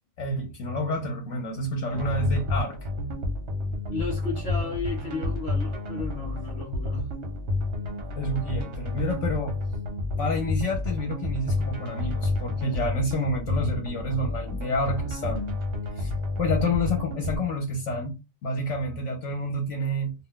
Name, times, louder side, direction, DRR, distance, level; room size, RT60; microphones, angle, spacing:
voice 1, 0.2-2.8 8.2-9.6 10.2-15.6 16.0-16.1 16.4-20.1, left 1 dB, 70° left, 0.9 m, -29 dB
sound 1, 1.9-17.4, left 2 dB, 60° right, 1.0 m, -30 dB
voice 2, 3.9-7.1, left 4 dB, 40° left, 0.9 m, -34 dB
2.4 x 2.1 x 3.6 m
omnidirectional pair, 1.4 m